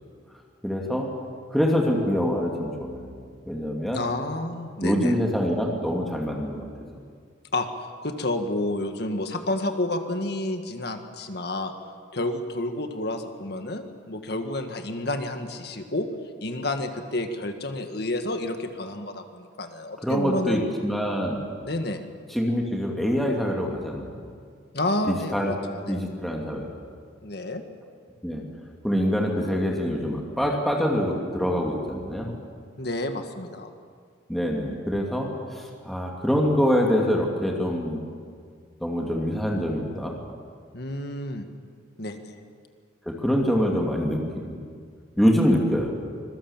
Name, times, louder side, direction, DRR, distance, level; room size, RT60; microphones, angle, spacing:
voice 1, 0.6-1.1 1.5-3.2 3.5-4.0 4.8-6.7 20.0-21.4 22.3-24.2 25.1-25.5 25.9-26.7 28.2-28.4 28.8-32.3 34.3-38.0 38.8-40.2 43.1-44.2 44.5-44.6 45.2-45.9, equal, ahead, -1 dB, 2.6 m, -25 dB
voice 2, 3.9-5.2 7.5-7.7 8.0-11.7 12.1-16.1 16.4-20.6 21.6-22.0 24.7-26.0 27.2-27.6 32.8-33.7 40.7-41.5 42.0-42.4, left 2 dB, 60° left, 6 dB, 1.8 m, -30 dB
25.5 x 22.5 x 7.3 m, 2.1 s
head